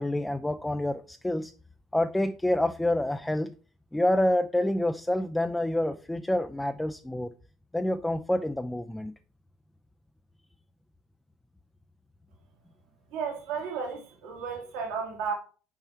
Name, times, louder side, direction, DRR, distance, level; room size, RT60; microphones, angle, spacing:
voice 1, 0.0-1.5 1.9-3.5 3.9-7.3 7.7-9.1, left 1 dB, 10° left, 0.4 m, -27 dB
voice 2, 13.1-15.3, right 6 dB, 65° right, 1.6 m, -33 dB
5.7 x 4.4 x 4.4 m
hypercardioid pair, 60°, 0 cm